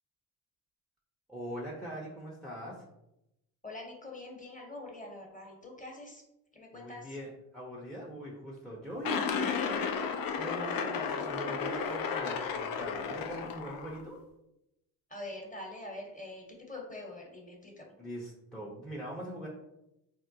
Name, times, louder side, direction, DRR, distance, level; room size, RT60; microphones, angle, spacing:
voice 1, 1.3-2.8 6.7-9.9 10.4-14.2 18.0-19.5, equal, ahead, -4 dB, 0.7 m, -41 dB
voice 2, 3.6-6.2 6.5-7.1 15.1-17.9, left 2 dB, 15° left, 0 dB, 1.0 m, -44 dB
sound 1, 9.0-14.0, left 6 dB, 50° left, 0.5 m, -33 dB
3.5 x 2.1 x 2.7 m, 0.86 s
supercardioid pair, 55°, 47 cm